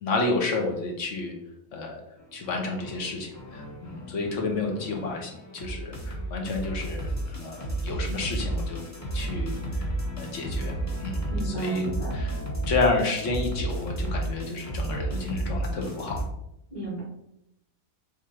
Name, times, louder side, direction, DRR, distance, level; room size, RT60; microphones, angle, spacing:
voice 1, 0.0-1.3 1.7-2.0 2.3-8.8 9.1-9.9 10.1-11.9 12.1-12.4 12.7-16.2, left 3 dB, 60° left, 2 dB, 1.2 m, -30 dB
sound 1, 2.2-16.2, right 1 dB, 15° left, 1.1 m, -32 dB
voice 2, 11.3-12.2 16.7-17.0, right 2 dB, 30° left, -7 dB, 1.7 m, -34 dB
3.7 x 3.2 x 4.3 m, 0.83 s
omnidirectional pair, 1.5 m